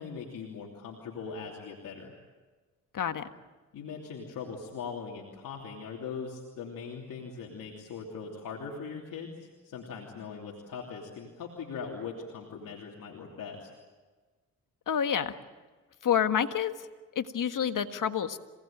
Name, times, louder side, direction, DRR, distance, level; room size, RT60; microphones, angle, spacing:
voice 1, 0.0-2.1 3.7-13.7, left 5 dB, 90° left, -1 dB, 3.1 m, -40 dB
voice 2, 14.9-15.3 16.0-16.7 17.1-18.4, left 8 dB, 70° left, 8 dB, 1.7 m, -28 dB
27.0 x 19.0 x 8.9 m, 1.3 s
cardioid pair, 65°, 32 cm